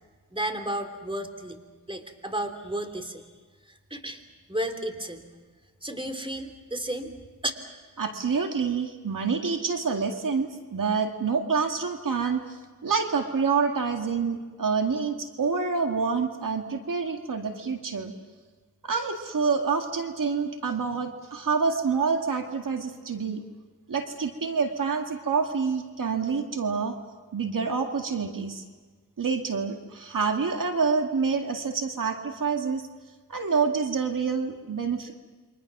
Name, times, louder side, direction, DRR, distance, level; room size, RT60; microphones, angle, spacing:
voice 1, 0.3-1.6 1.9-3.3 3.6-4.2 4.5-5.3 5.8-7.1, right 1 dB, 15° right, 6 dB, 3.1 m, -33 dB
voice 2, 8.0-18.1 18.8-23.4 23.9-27.0 27.3-28.6 29.2-32.8 33.3-35.1, right 5 dB, 75° right, 4 dB, 2.0 m, -27 dB
29.0 x 24.5 x 6.0 m, 1.4 s
wide cardioid pair, 65°, 33 cm